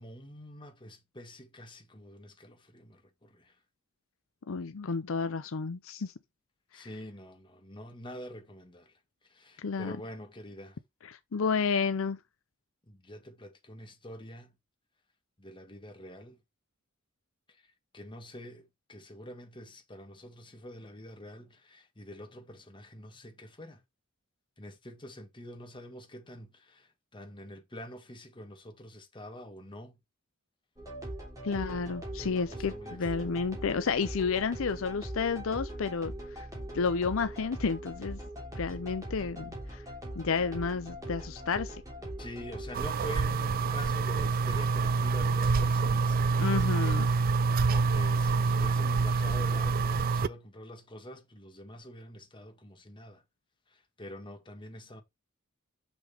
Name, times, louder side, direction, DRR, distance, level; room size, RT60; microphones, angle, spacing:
voice 1, 0.0-3.5 6.7-9.0 9.2-10.8 12.9-14.5 15.4-16.4 17.5-23.8 24.6-30.0 32.2-33.3 42.2-46.2 47.7-53.2 53.7-55.0, left 1 dB, 25° left, 1.6 m, -46 dB
voice 2, 4.5-6.1 6.7-6.9 9.6-9.9 11.1-12.2 31.4-36.5 36.7-38.2 38.6-39.8 40.2-41.8 46.4-47.1, left 5 dB, 65° left, 0.6 m, -31 dB
sound 1, 30.8-42.9, right 1 dB, 15° right, 3.5 m, -41 dB
sound 2, 42.7-50.3, right 4 dB, 45° right, 0.4 m, -26 dB
6.3 x 6.2 x 3.5 m
head